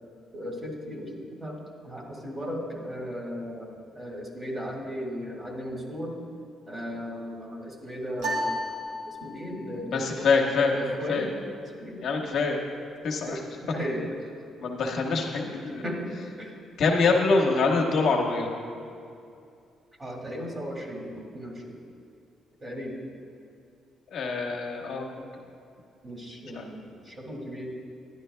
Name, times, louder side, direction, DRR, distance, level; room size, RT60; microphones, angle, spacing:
voice 1, 0.3-1.6 1.8-6.1 6.7-8.6 9.2-10.3 10.7-11.3 11.6-12.0 13.3-14.1 15.8-16.1 16.4-16.5 20.0-21.8 22.6-22.9 26.0-27.7, equal, 25° right, -1 dB, 1.7 m, -36 dB
sound 1, 8.2-9.7, equal, 80° right, 1.2 m, -32 dB
voice 2, 9.9-10.7 11.1-11.3 12.0-12.6 13.0-13.4 14.6-15.8 16.8-18.5 24.1-25.2 26.5-26.6, left 4 dB, 70° left, 0 dB, 1.0 m, -25 dB
11.0 x 10.0 x 2.2 m, 2.5 s
cardioid pair, 90°, 0 cm